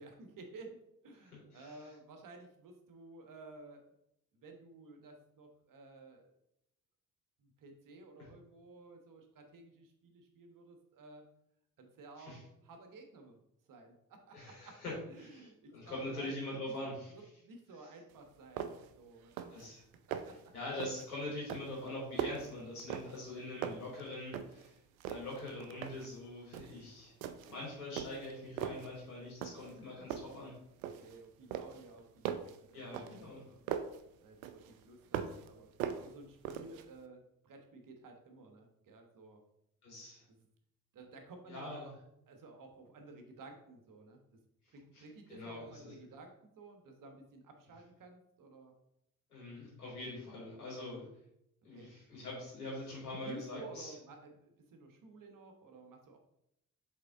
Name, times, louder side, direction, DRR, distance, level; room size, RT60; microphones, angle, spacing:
voice 1, 0.0-3.8 4.3-6.3 7.4-11.2 11.8-13.4 13.7-19.5 20.1-20.4 30.9-33.6 34.2-39.4 40.3-40.4 40.9-41.9 42.3-44.2 44.7-48.7 50.9-51.1 51.7-51.9 53.1-56.2, right 3 dB, 45° right, 4 dB, 1.3 m, -54 dB
voice 2, 1.2-1.8 8.2-8.3 12.2-12.4 14.3-14.9 15.4-17.1 19.5-19.8 20.5-24.8 25.1-27.1 27.5-30.5 32.7-33.4 39.8-40.2 41.5-41.9 45.3-45.9 49.3-51.0 51.6-53.9, left 2 dB, 85° left, -6 dB, 2.6 m, -43 dB
sound 1, 18.1-18.2 18.6-19.0 19.2-19.7 19.9-20.4 20.8-21.1 21.5-23.3 23.6-24.7 25.0-26.1 26.5-26.8 27.2-27.6 28.0-28.9 29.4-29.8 30.1-31.2 31.5-34.0 34.4-35.5 35.8-36.9, right 9 dB, 70° right, 0.6 m, -40 dB
7.4 x 3.7 x 3.7 m, 0.79 s
figure-of-eight pair, 45°, 44 cm